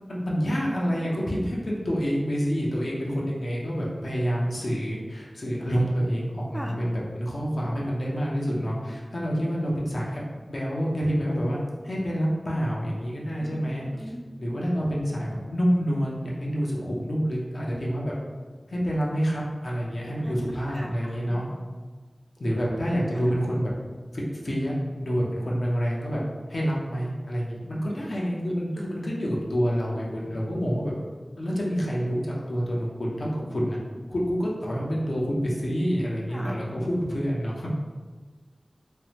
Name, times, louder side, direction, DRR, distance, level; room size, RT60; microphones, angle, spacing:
voice 1, 0.1-13.8 14.4-18.1 18.7-21.4 22.4-23.7 24.1-26.2 26.5-30.9 31.4-33.8 34.1-37.7, equal, 70° left, -4 dB, 0.6 m, -27 dB
voice 2, 13.8-14.2 20.2-20.3 20.7-21.4 28.7-28.9 36.3-36.6, equal, 5° left, 1 dB, 0.3 m, -39 dB
3.2 x 2.1 x 2.9 m, 1.4 s
wide cardioid pair, 50°, 0 cm